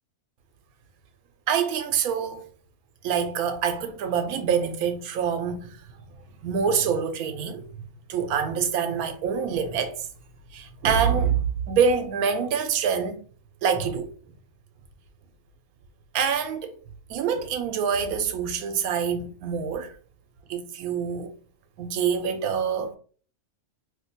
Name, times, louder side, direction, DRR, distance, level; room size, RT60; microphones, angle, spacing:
voice 1, 1.5-2.4 3.0-5.8 6.4-7.6 8.1-10.1 10.5-13.2 13.6-14.1 16.1-16.8 17.1-19.9 20.5-21.3 21.8-23.0, right 7 dB, 90° right, 1.1 m, -25 dB
2.7 x 2.2 x 4.1 m
omnidirectional pair, 1.5 m